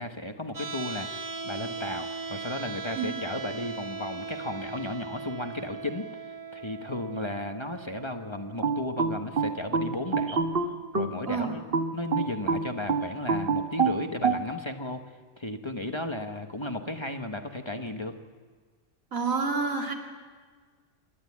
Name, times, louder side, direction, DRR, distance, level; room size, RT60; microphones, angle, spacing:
voice 1, 0.0-6.2 6.5-10.4 10.9-11.6 11.9-15.0 15.4-18.1, left 1 dB, 25° left, 6 dB, 1.1 m, -34 dB
sound 1, 0.5-12.6, right 4 dB, 15° right, 1.0 m, -40 dB
sound 2, 8.6-11.2 11.7-14.4, right 4 dB, 45° right, 1.4 m, -26 dB
voice 2, 19.1-19.9, right 4 dB, 85° right, 1 dB, 3.0 m, -28 dB
27.0 x 11.5 x 8.5 m, 1.5 s
omnidirectional pair, 1.4 m